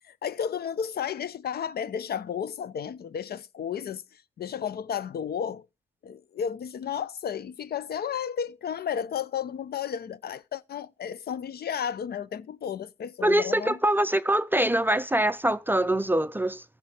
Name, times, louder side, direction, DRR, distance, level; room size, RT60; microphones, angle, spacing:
voice 1, 0.2-4.0 4.4-5.6 6.0-13.8, left 8 dB, 50° left, 0.7 m, -33 dB
voice 2, 13.2-16.6, right 1 dB, 10° right, 0.5 m, -24 dB
15.0 x 6.1 x 4.9 m
cardioid pair, 90°, 20 cm